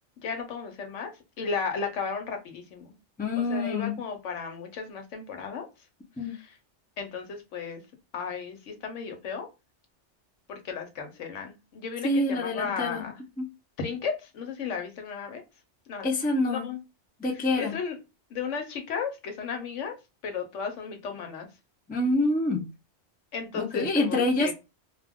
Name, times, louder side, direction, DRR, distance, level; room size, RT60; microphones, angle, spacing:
voice 1, 0.2-1.1 1.4-3.0 3.4-5.7 6.2-6.5 7.0-7.8 8.1-9.5 10.5-13.2 13.8-15.4 15.9-16.1 16.5-16.8 17.6-18.0 18.3-20.0 20.2-21.5 23.3-24.5, left 5 dB, 90° left, 1.1 m, -34 dB
voice 2, 3.2-4.0 6.2-6.4 12.0-13.1 13.4-13.5 16.0-16.7 17.2-17.8 21.9-22.7 23.5-24.5, left 2 dB, 15° left, 0.3 m, -26 dB
2.4 x 2.3 x 3.5 m
omnidirectional pair, 1.2 m